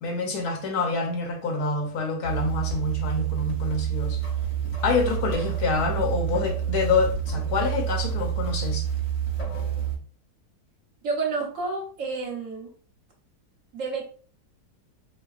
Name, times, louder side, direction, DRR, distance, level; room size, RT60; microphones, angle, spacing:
voice 1, 0.0-4.2 4.8-8.9, left 4 dB, 70° left, 1.2 m, -27 dB
sound 1, 2.2-10.0, right 9 dB, 40° left, 0.4 m, -28 dB
voice 2, 11.0-12.7 13.7-14.0, right 4 dB, 55° right, 1.2 m, -30 dB
4.1 x 2.2 x 2.3 m
omnidirectional pair, 1.7 m